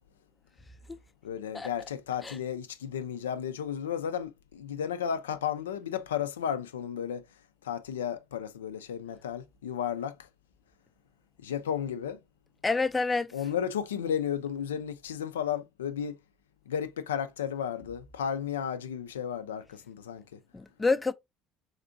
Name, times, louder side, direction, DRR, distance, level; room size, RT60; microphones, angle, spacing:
voice 1, 1.2-7.3 7.6-10.2 11.4-12.2 13.3-16.2 16.7-20.4, left 8 dB, 85° left, 0.3 m, -33 dB
voice 2, 12.6-13.3 20.5-21.1, left 3 dB, 20° left, 0.4 m, -28 dB
3.5 x 2.5 x 2.6 m
hypercardioid pair, 65°, 0 cm